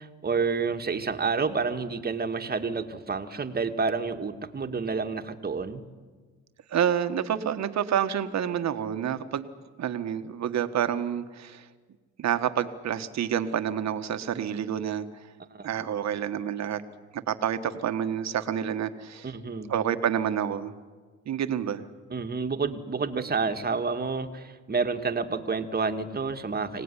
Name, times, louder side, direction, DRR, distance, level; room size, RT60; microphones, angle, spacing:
voice 1, 0.0-5.8 15.5-15.7 19.2-19.7 22.1-26.8, right 4 dB, 30° right, 7 dB, 1.9 m, -29 dB
voice 2, 6.7-9.5 9.8-11.6 12.2-15.0 15.6-16.8 17.1-19.3 19.7-20.7 21.2-21.8, right 9 dB, 60° right, 9 dB, 1.6 m, -28 dB
25.5 x 18.0 x 10.0 m, 1.4 s
cardioid pair, 90°, 30 cm